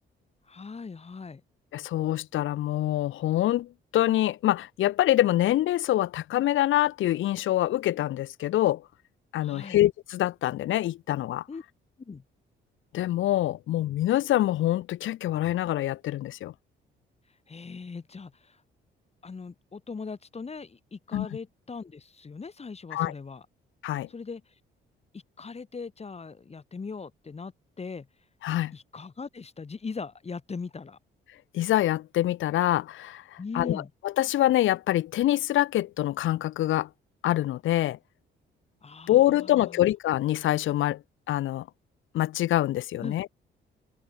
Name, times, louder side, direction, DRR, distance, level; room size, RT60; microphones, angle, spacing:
voice 1, 0.5-1.4 9.4-9.8 11.5-11.6 12.0-12.2 17.5-18.6 19.2-23.5 24.1-24.4 25.1-27.5 27.8-28.1 28.7-31.0 33.4-33.9 38.8-39.9 43.0-43.2, left 4 dB, 30° left, 3.7 m, -40 dB
voice 2, 1.7-8.8 9.3-11.4 12.9-16.5 21.1-21.3 22.9-23.1 23.8-24.1 28.4-28.7 31.5-36.9 37.2-38.0 39.1-41.0 41.3-41.7 42.1-43.3, left 14 dB, 80° left, 2.2 m, -25 dB
cardioid pair, 90°, 20 cm